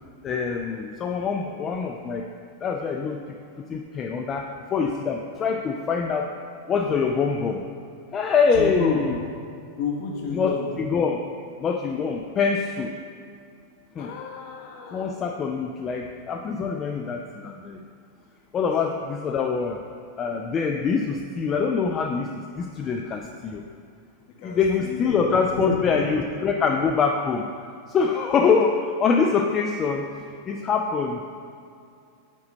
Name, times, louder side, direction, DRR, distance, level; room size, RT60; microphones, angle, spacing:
voice 1, 0.2-2.3 2.6-6.3 6.7-7.6 8.1-9.1 10.3-10.5 10.9-11.2 11.6-12.9 14.0-14.1 14.9-17.8 18.5-19.8 20.2-23.6 24.4-27.4 27.9-30.1 30.5-31.2, left 5 dB, 25° left, 2 dB, 0.4 m, -24 dB
voice 2, 8.5-9.1 9.8-10.7 14.0-15.1 24.3-26.2, left 4 dB, 45° left, 0 dB, 1.1 m, -31 dB
5.2 x 5.0 x 5.2 m, 2.5 s
figure-of-eight pair, 90°, 0 cm